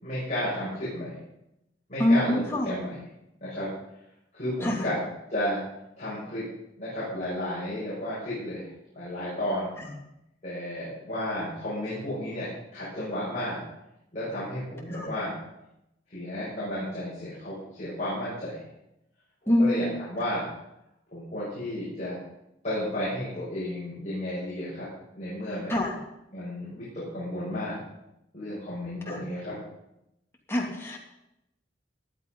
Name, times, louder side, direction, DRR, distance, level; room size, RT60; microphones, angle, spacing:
voice 1, 0.0-1.2 1.9-3.0 3.4-3.7 4.3-5.0 5.3-5.6 6.0-6.5 6.8-8.7 8.9-9.7 10.4-13.6 14.1-15.4 16.1-18.6 19.4-20.5 21.1-22.2 22.6-24.9 25.1-25.7 26.3-27.8 28.3-29.6, left 1 dB, 35° left, -10 dB, 6.6 m, -32 dB
voice 2, 2.0-2.8 4.6-4.9 9.8-9.9 14.9-15.1 19.5-19.9 25.7-26.0 29.1-29.2 30.5-31.0, left 1 dB, 15° left, -1 dB, 2.5 m, -25 dB
18.5 x 11.5 x 5.4 m, 0.86 s
head